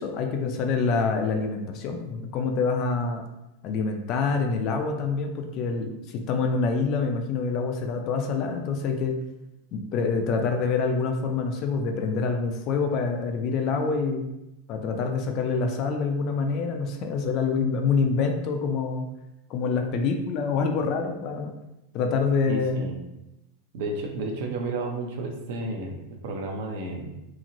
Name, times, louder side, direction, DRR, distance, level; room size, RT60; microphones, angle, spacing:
voice 1, 0.0-3.2 3.6-9.2 9.7-14.3 14.7-19.0 19.5-21.5 21.9-22.9, left 4 dB, 35° left, 4 dB, 0.3 m, -26 dB
voice 2, 22.5-23.0 23.7-27.1, right 2 dB, 55° right, 2 dB, 0.5 m, -32 dB
2.9 x 2.8 x 2.5 m, 0.92 s
supercardioid pair, 165°, 0 cm